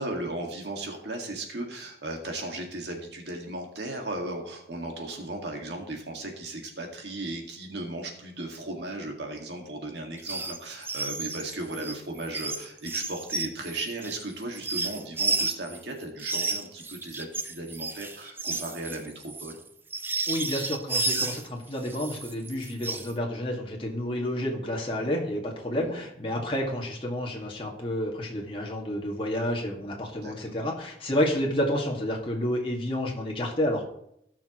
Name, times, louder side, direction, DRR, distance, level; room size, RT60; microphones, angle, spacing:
voice 1, 0.0-19.6 25.8-26.0 30.2-30.6, right 2 dB, 75° right, 2 dB, 2.0 m, -36 dB
sound 1, 10.2-10.6 10.8-15.8 16.2-21.5 21.9-23.1, right 3 dB, 10° right, 0.5 m, -32 dB
voice 2, 20.3-33.8, left 1 dB, 30° left, -1 dB, 1.9 m, -30 dB
17.5 x 6.3 x 3.0 m, 0.75 s
head